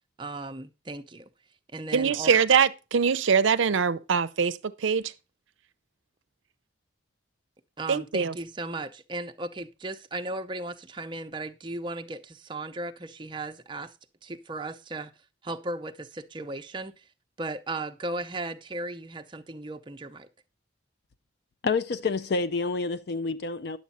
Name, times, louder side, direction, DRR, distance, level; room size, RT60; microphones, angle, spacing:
voice 1, 0.2-1.3 1.7-2.3 7.8-13.9 14.2-15.1 15.4-17.1 17.4-20.3, right 2 dB, 25° right, 0.6 m, -36 dB
voice 2, 1.9-5.1 7.9-8.3, right 6 dB, 75° right, 0.5 m, -23 dB
voice 3, 21.6-23.8, left 4 dB, 55° left, 0.4 m, -28 dB
10.5 x 7.1 x 4.2 m
head